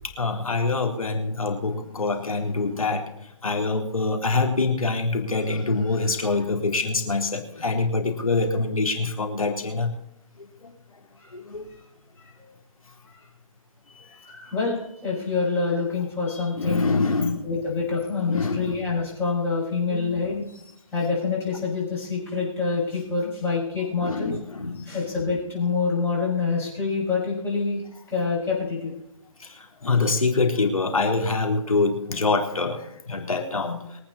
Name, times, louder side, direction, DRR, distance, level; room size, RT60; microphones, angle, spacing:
voice 1, 0.2-3.1 3.4-9.9 10.6-10.7 11.4-11.7 16.5-17.5 18.3-18.8 19.9-20.1 24.0-24.8 29.4-33.8, left 3 dB, 80° left, 3 dB, 3.6 m, -25 dB
voice 2, 14.2-16.9 17.4-20.6 20.9-24.3 24.8-27.8 28.1-28.9, left 4 dB, 10° left, -6 dB, 6.4 m, -26 dB
23.5 x 8.9 x 4.2 m, 0.78 s
hypercardioid pair, 150°, 18 cm